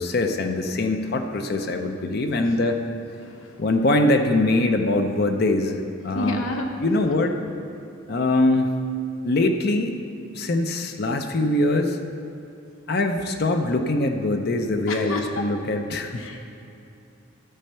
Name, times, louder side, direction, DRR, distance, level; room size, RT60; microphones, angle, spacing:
voice 1, 0.0-2.8 3.6-6.4 6.8-7.3 8.1-8.7 9.2-9.9 10.3-12.0 12.9-16.4, left 2 dB, 50° left, 5 dB, 0.6 m, -23 dB
voice 2, 3.2-3.6 6.1-7.2 14.9-15.5 16.1-16.4, left 2 dB, 90° left, 3 dB, 0.8 m, -31 dB
12.5 x 4.4 x 6.7 m, 2.7 s
head